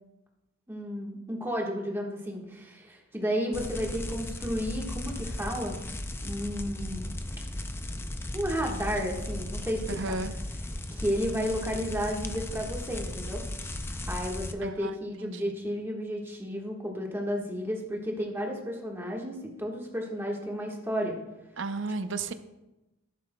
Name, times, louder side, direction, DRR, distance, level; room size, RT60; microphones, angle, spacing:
voice 1, 0.7-5.8 6.2-7.1 8.3-10.2 10.9-13.4 13.8-21.1, equal, 10° right, -1 dB, 1.4 m, -32 dB
sound 1, 3.5-14.5, left 1 dB, 10° left, 0.4 m, -36 dB
voice 2, 9.9-10.4 14.6-15.0 15.2-15.5 21.6-22.3, right 3 dB, 55° right, 10 dB, 0.6 m, -33 dB
13.5 x 11.0 x 2.2 m, 1.0 s
head